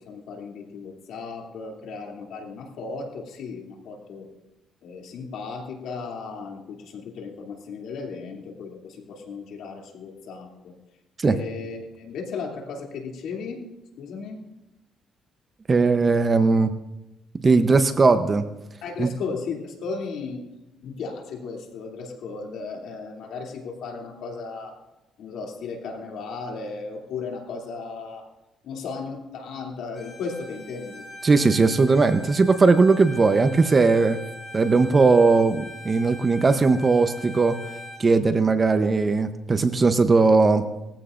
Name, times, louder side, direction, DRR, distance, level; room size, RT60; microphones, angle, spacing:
voice 1, 0.1-4.3 4.8-10.7 11.2-13.6 14.0-14.4 18.8-20.4 20.8-24.8 25.2-28.2 28.6-31.1, left 4 dB, 80° left, 0 dB, 2.8 m, -35 dB
voice 2, 15.7-16.7 17.3-18.4 19.0-19.1 31.2-34.2 34.5-37.6 38.0-40.6, right 4 dB, 35° right, 9 dB, 0.8 m, -19 dB
Bowed string instrument, 29.9-38.1, left 1 dB, 35° left, 3.9 m, -42 dB
20.0 x 15.0 x 2.6 m, 0.95 s
cardioid pair, 90°, 0 cm